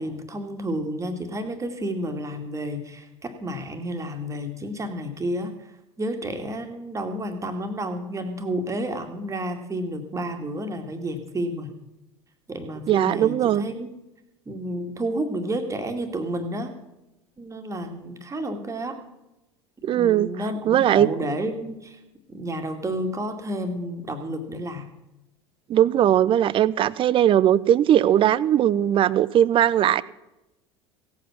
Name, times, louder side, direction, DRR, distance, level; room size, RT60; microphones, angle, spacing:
voice 1, 0.0-11.8 12.5-13.9 14.5-16.7 17.4-19.0 19.9-22.0 22.3-24.9, right 1 dB, 20° right, 5 dB, 2.1 m, -31 dB
voice 2, 12.9-13.6 19.8-20.3 20.7-21.1 25.7-30.0, right 11 dB, 35° right, 19 dB, 0.6 m, -19 dB
17.0 x 8.4 x 6.1 m, 0.96 s
figure-of-eight pair, 70°, 15 cm